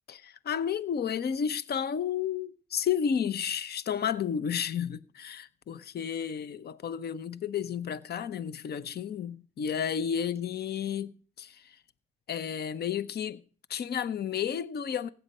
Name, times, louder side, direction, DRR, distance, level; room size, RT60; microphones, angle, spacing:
voice 1, 0.1-11.8 12.3-13.4 13.7-15.1, left 8 dB, 55° left, 0.8 m, -32 dB
15.5 x 9.4 x 5.5 m
cardioid pair, 90°, 20 cm